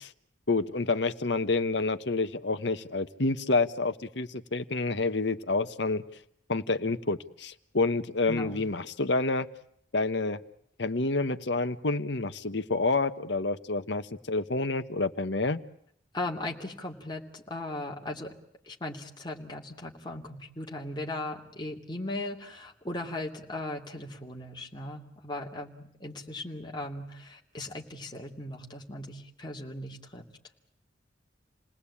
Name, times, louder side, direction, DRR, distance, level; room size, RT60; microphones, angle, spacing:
voice 1, 0.5-6.0 6.5-9.5 9.9-10.4 10.8-15.6, left 3 dB, 65° left, 11 dB, 1.2 m, -28 dB
voice 2, 8.3-8.6 16.1-18.3 18.6-30.3, left 1 dB, 25° left, 0 dB, 2.8 m, -38 dB
29.0 x 19.5 x 8.6 m, 0.73 s
head